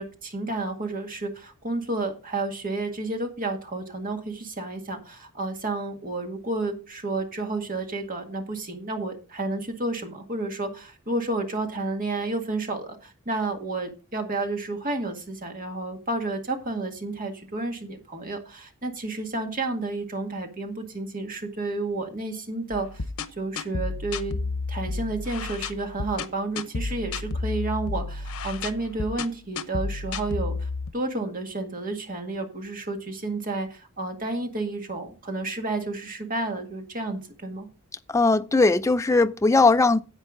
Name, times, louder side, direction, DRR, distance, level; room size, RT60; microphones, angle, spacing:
voice 1, 0.0-23.0 23.4-24.4 24.7-37.7, right 2 dB, 40° right, 1.9 m, -31 dB
sound 1, 22.7-30.9, left 3 dB, 85° left, 0.9 m, -32 dB
voice 2, 38.1-40.0, left 3 dB, 15° left, 0.4 m, -19 dB
10.5 x 8.0 x 3.8 m
head